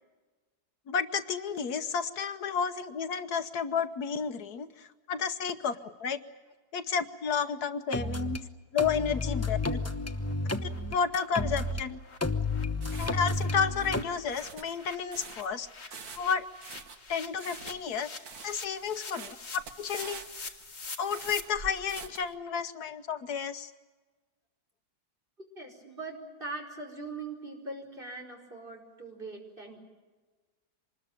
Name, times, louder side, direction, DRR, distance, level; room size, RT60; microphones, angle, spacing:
voice 1, 0.9-6.2 6.7-8.4 8.7-9.8 10.9-12.0 12.9-15.7 16.2-16.4 17.1-18.1 18.4-20.2 21.0-23.7, left 6 dB, 70° left, 10 dB, 1.5 m, -31 dB
sound 1, 7.9-8.4 8.8-11.8 12.2-14.0, left 2 dB, 15° left, 0.7 m, -31 dB
sound 2, 8.4-8.5 8.9-9.0 9.3-9.4 9.8-9.9 10.2-10.3 10.6-10.8 11.1-11.3 11.5-21.4, left 4 dB, 45° left, 2.0 m, -46 dB
sound 3, 12.3-22.4, right 4 dB, 65° right, 2.0 m, -46 dB
voice 2, 25.5-29.8, right 3 dB, 30° right, 0 dB, 5.1 m, -41 dB
25.5 x 20.5 x 9.0 m, 1.3 s
omnidirectional pair, 1.7 m